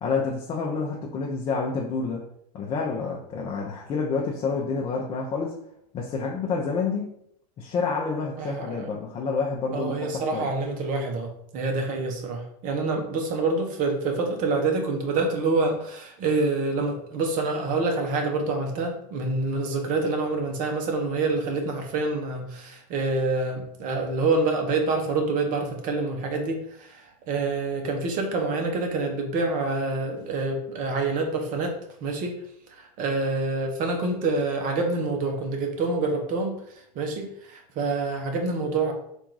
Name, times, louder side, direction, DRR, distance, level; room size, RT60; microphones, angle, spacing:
voice 1, 0.0-2.2 2.5-5.5 5.9-7.1 7.6-10.5, left 4 dB, 30° left, -2 dB, 0.6 m, -28 dB
voice 2, 8.4-8.9 9.7-31.8 32.0-32.3 32.7-38.9, right 3 dB, 40° right, 3 dB, 0.9 m, -27 dB
3.6 x 2.6 x 4.6 m, 0.73 s
supercardioid pair, 130°, 21 cm